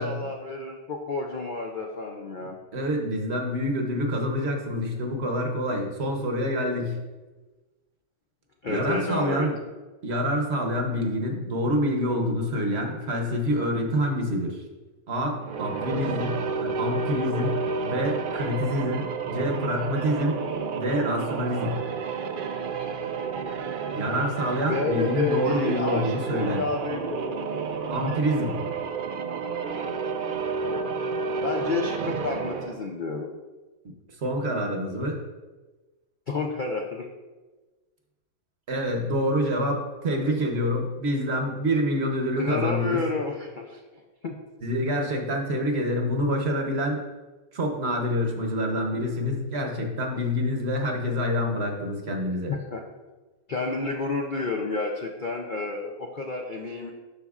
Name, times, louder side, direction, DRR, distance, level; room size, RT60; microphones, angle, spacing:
voice 1, 0.0-2.6 8.6-9.5 24.7-27.5 31.4-33.3 36.3-37.1 42.4-43.8 44.2-44.4 52.5-52.8 53.5-56.9, left 4 dB, 75° left, 1 dB, 0.4 m, -30 dB
voice 2, 2.4-7.0 8.7-9.6 10.0-14.6 15.1-20.4 20.7-21.8 23.9-26.6 27.9-28.6 33.8-33.9 34.2-35.2 38.7-43.0 44.6-47.0 47.5-52.5, equal, 50° right, 2 dB, 1.0 m, -27 dB
sound 1, 15.3-32.8, right 5 dB, 85° right, 0.4 m, -31 dB
12.5 x 4.1 x 2.4 m, 1.2 s
omnidirectional pair, 1.6 m